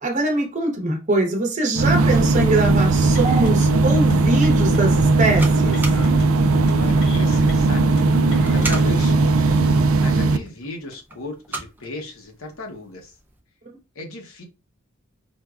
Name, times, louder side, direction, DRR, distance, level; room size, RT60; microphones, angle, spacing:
voice 1, 0.0-5.8, right 2 dB, 35° right, 0.8 m, -22 dB
sound 1, 1.8-10.4, right 3 dB, 80° right, 0.4 m, -18 dB
sound 2, 3.1-3.7 3.9-4.1 4.4-4.8 5.4-6.2 6.5-6.7 7.0-7.5 8.0-8.8, left 4 dB, 60° left, 1.0 m, -41 dB
voice 2, 6.8-13.1 13.9-14.4, left 2 dB, 80° left, 0.9 m, -36 dB
sound 3, 10.1-13.4, right 2 dB, 10° right, 0.4 m, -39 dB
4.4 x 2.2 x 2.4 m
head